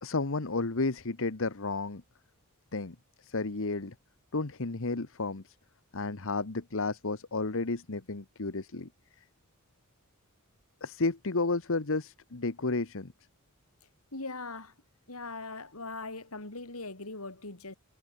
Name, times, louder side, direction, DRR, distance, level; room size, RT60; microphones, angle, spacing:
voice 1, 0.0-2.0 2.7-2.9 3.2-3.9 4.3-5.5 5.9-8.9 10.8-13.1, left 3 dB, 65° left, 1.3 m, -32 dB
voice 2, 14.1-14.7 15.1-17.8, left 3 dB, 80° left, 4.3 m, -40 dB
head